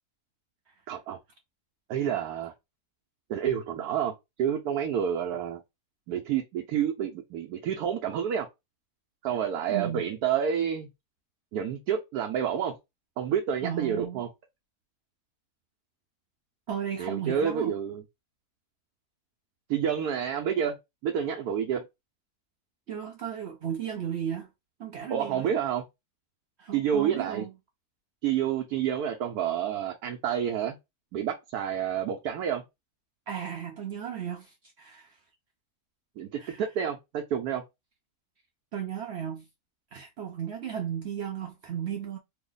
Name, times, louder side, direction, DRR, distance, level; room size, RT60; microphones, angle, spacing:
voice 1, 0.9-1.2 1.9-2.5 3.3-4.1 4.4-5.6 6.1-8.5 9.2-10.9 11.5-12.8 13.2-14.3 17.0-18.0 19.7-20.8 21.0-21.9 25.1-25.8 26.7-27.4 28.2-30.8 31.1-32.6 36.2-37.6, right 8 dB, 90° right, 1.1 m, -29 dB
voice 2, 9.7-10.1 13.6-14.2 16.7-17.7 22.9-24.5 24.8-25.5 26.6-27.5 33.3-35.2 36.4-36.6 38.7-39.5 39.9-42.2, right 8 dB, 65° right, 0.7 m, -35 dB
3.1 x 2.1 x 3.7 m
omnidirectional pair, 1.6 m